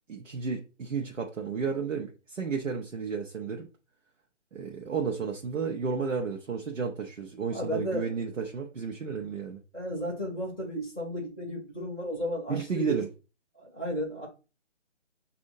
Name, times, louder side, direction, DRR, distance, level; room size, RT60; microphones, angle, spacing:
voice 1, 0.1-3.7 4.5-9.6 12.5-13.1, right 5 dB, 90° right, 1.0 m, -32 dB
voice 2, 7.5-8.2 9.7-13.0 13.5-14.3, equal, 15° right, 1.2 m, -33 dB
6.3 x 2.7 x 2.6 m
hypercardioid pair, 175°, 36 cm